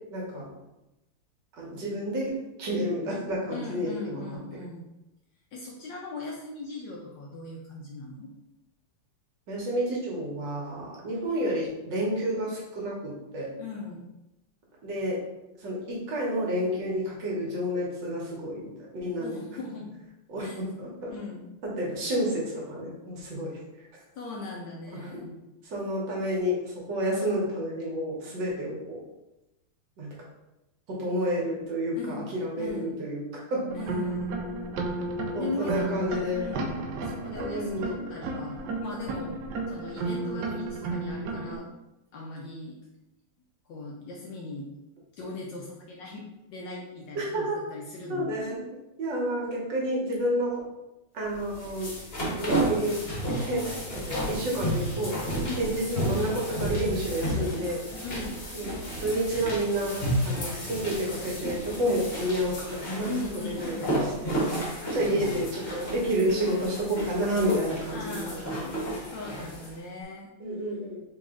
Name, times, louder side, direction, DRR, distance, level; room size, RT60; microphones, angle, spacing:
voice 1, 0.1-0.5 1.5-4.4 9.5-13.5 14.8-15.2 15.6-19.4 20.3-21.1 21.8-23.6 24.9-25.3 25.6-29.0 30.0-30.1 30.9-33.2 33.5-33.6 35.3-36.4 37.4-38.0 47.1-47.6 48.1-48.6 49.0-50.6 51.1-51.9 52.2-53.0 53.4-55.2 55.6-57.8 58.5-58.7 59.0-64.6 64.9-68.4 70.4-71.0, equal, 60° right, -4 dB, 1.5 m, -30 dB
voice 2, 3.5-4.9 5.5-8.3 13.6-14.0 19.2-19.9 20.4-20.6 21.1-21.5 24.2-25.2 32.0-32.3 32.6-33.0 33.7-34.4 35.4-36.8 37.1-39.4 39.7-41.7 42.1-42.8 43.7-44.7 45.1-48.3 55.5-55.8 58.0-58.4 63.0-64.0 65.0-65.6 67.9-70.3, left 3 dB, 75° left, -2 dB, 1.1 m, -39 dB
sound 1, 33.7-41.6, right 3 dB, 85° right, 0.9 m, -33 dB
sound 2, 51.3-69.7, right 1 dB, 40° left, 1.0 m, -32 dB
sound 3, 54.1-56.6 56.9-57.4 57.9-61.6, equal, 10° right, 0.9 m, -48 dB
4.1 x 3.0 x 3.6 m, 0.95 s
omnidirectional pair, 2.4 m